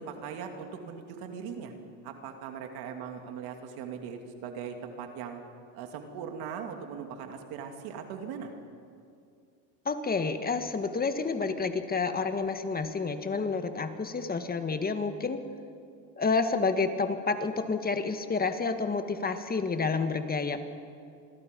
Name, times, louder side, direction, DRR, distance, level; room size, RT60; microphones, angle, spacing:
voice 1, 0.0-1.7 2.0-5.4 5.7-8.5, right 7 dB, 70° right, 4 dB, 2.8 m, -40 dB
voice 2, 9.9-15.4 16.2-20.6, left 4 dB, 25° left, 8 dB, 1.7 m, -29 dB
28.0 x 21.5 x 5.4 m, 2.4 s
supercardioid pair, 105°, 39 cm